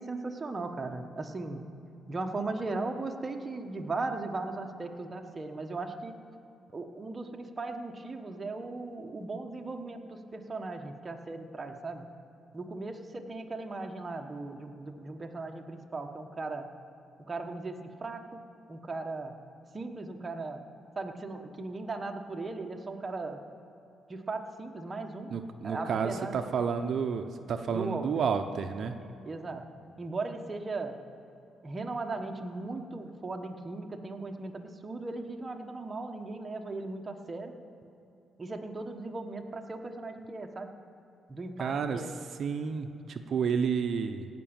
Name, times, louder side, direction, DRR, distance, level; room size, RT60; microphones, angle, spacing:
voice 1, 0.0-1.7 2.1-6.2 6.7-12.0 12.5-16.7 17.2-19.4 19.7-20.6 20.9-23.4 24.1-25.3 25.6-26.4 27.7-28.2 29.0-29.7 30.0-31.0 31.6-37.6 38.4-40.7 41.3-42.1, right 3 dB, 30° right, 4 dB, 1.2 m, -37 dB
voice 2, 25.3-29.0 41.6-42.0 42.4-44.3, right 6 dB, 60° right, 7 dB, 0.8 m, -30 dB
16.5 x 6.1 x 8.9 m, 2.8 s
cardioid pair, 90°, 0 cm